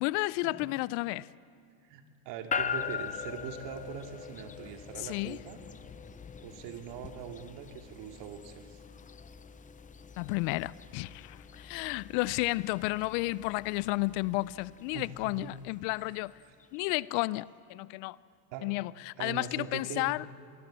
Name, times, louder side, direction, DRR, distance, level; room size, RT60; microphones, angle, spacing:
voice 1, 0.0-1.3 5.0-5.4 10.2-16.4 16.7-18.2 18.6-20.2, left 21 dB, 65° left, 0.6 m, -32 dB
voice 2, 1.8-5.6 6.4-8.8 14.9-15.5 18.5-18.7 19.2-20.1, right 7 dB, 60° right, 2.6 m, -42 dB
sound 1, 2.5-16.8, left 7 dB, 15° left, 0.6 m, -42 dB
25.0 x 20.0 x 7.5 m
supercardioid pair, 110°, 48 cm